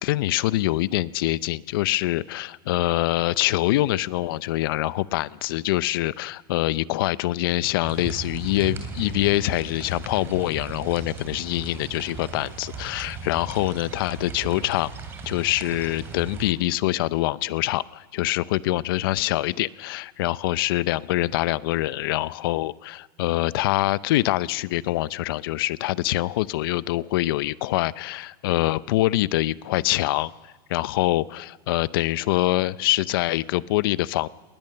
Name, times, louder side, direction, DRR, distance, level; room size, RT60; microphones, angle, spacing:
voice 1, 0.0-14.9 15.3-34.3, left 16 dB, 65° left, 19 dB, 0.5 m, -25 dB
sound 1, 7.8-16.5, right 4 dB, 20° right, 3.0 m, -37 dB
20.0 x 19.5 x 6.7 m, 1.3 s
supercardioid pair, 165°, 13 cm